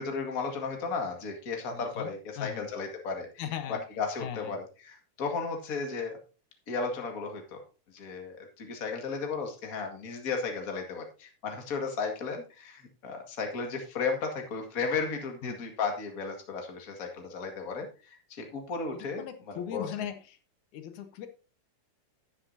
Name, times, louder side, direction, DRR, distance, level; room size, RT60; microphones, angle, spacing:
voice 1, 0.0-6.2 6.7-7.6 7.9-19.9, left 4 dB, 35° left, 3 dB, 1.9 m, -34 dB
voice 2, 1.7-2.1 2.4-2.6 3.4-3.8 4.2-4.6 15.4-15.6 19.2-20.2 20.7-21.3, left 9 dB, 80° left, 8 dB, 2.4 m, -38 dB
11.0 x 9.8 x 2.7 m, 0.33 s
omnidirectional pair, 3.4 m